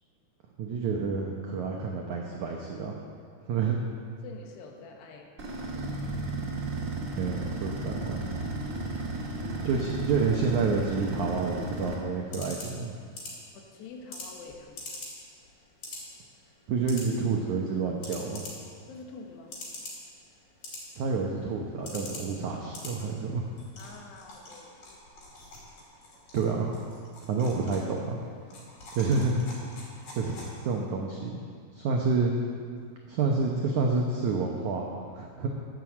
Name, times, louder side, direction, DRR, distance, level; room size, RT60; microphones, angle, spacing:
voice 1, 0.6-2.9 3.5-3.8 7.1-8.2 9.1-9.2 9.6-12.9 16.7-18.4 20.9-23.5 26.3-26.7 27.3-28.2 28.9-29.4 30.1-31.4 31.7-32.3 33.1-35.5, right 4 dB, 85° right, 0 dB, 1.7 m, -29 dB
voice 2, 4.2-6.3 8.4-8.6 13.5-15.0 18.9-19.5 23.8-25.0 30.2-30.4, left 4 dB, 80° left, 1 dB, 3.4 m, -47 dB
sound 1, 5.4-11.9, right 2 dB, 45° right, 1.0 m, -34 dB
sound 2, 11.9-30.9, left 2 dB, 55° left, 4.3 m, -46 dB
11.0 x 9.3 x 7.2 m, 2.1 s
omnidirectional pair, 4.8 m